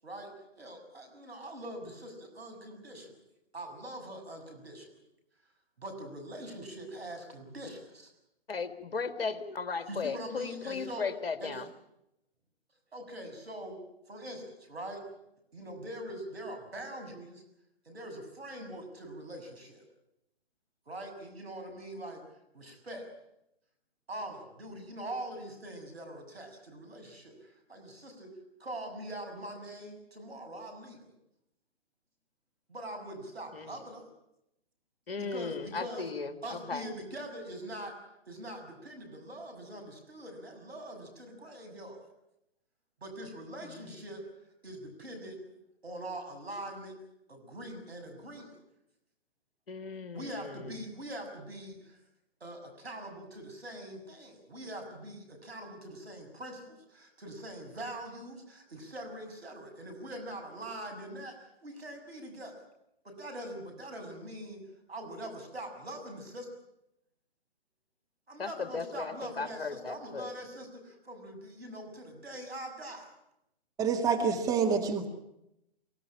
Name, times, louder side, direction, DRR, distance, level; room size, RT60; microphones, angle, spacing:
voice 1, 0.0-3.2 3.5-4.9 5.8-8.1 9.9-11.1 11.4-11.7 12.9-13.8 14.1-15.0 15.5-17.4 17.8-19.8 20.9-22.2 22.5-23.1 24.1-28.3 28.6-31.1 32.7-34.1 35.2-37.9 38.3-42.1 43.0-44.2 44.6-45.4 45.8-47.0 47.3-48.6 50.1-52.0 52.4-62.6 63.0-64.6 64.9-66.5 68.3-73.1, right 1 dB, 75° right, 5 dB, 6.8 m, -43 dB
voice 2, 8.5-11.7 33.5-33.7 35.1-36.8 49.7-50.7 68.4-70.3, left 5 dB, 65° left, 11 dB, 2.0 m, -36 dB
voice 3, 73.8-75.1, right 5 dB, 10° right, 2 dB, 2.0 m, -27 dB
24.5 x 17.0 x 8.8 m, 0.83 s
figure-of-eight pair, 130°, 31 cm